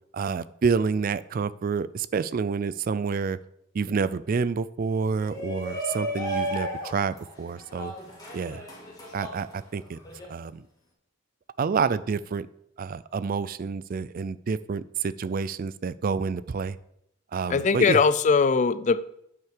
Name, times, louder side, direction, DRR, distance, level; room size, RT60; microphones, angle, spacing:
voice 1, 0.1-3.4 3.7-7.9 8.3-8.7 9.1-10.0 10.3-10.6 11.6-12.5 12.8-16.8 17.3-18.0, right 5 dB, 40° right, 17 dB, 0.3 m, -28 dB
Shout, 5.1-10.2, equal, 20° left, 2.3 m, -34 dB
voice 2, 17.5-19.0, left 5 dB, 35° left, 15 dB, 0.4 m, -20 dB
9.3 x 5.8 x 6.6 m, 0.77 s
head